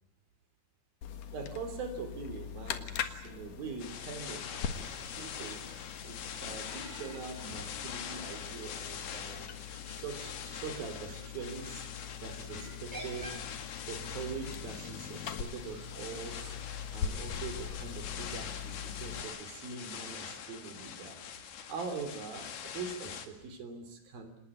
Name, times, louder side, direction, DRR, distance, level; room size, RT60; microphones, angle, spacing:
sound 1, 1.0-19.2, left 8 dB, 60° left, 2.8 m, -42 dB
voice 1, 1.3-9.5 9.9-13.4 13.9-24.4, right 5 dB, 65° right, 8 dB, 4.8 m, -43 dB
sound 2, 3.8-23.3, left 8 dB, 80° left, 4.1 m, -44 dB
sound 3, 6.7-11.9 12.5-18.3, right 1 dB, 10° right, 5.8 m, -52 dB
27.0 x 20.0 x 8.3 m, 0.88 s
omnidirectional pair, 4.6 m